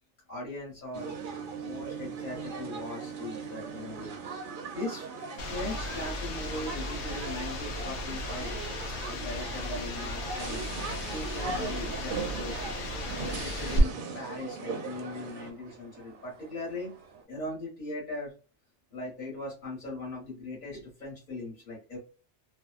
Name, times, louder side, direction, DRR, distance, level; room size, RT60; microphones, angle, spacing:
voice 1, 0.3-1.1 1.6-4.1 4.7-5.1 5.3-8.5 9.0-10.6 11.1-12.8 13.1-16.9 17.3-18.3 18.9-22.0, left 2 dB, 45° left, -4 dB, 1.2 m, -39 dB
sound 1, 0.9-15.5, right 4 dB, 55° right, 0.7 m, -39 dB
sound 2, 5.4-13.8, left 1 dB, 75° left, 0.9 m, -35 dB
sound 3, 10.6-17.3, right 5 dB, 85° right, 1.0 m, -55 dB
2.6 x 2.1 x 2.4 m, 0.35 s
omnidirectional pair, 1.2 m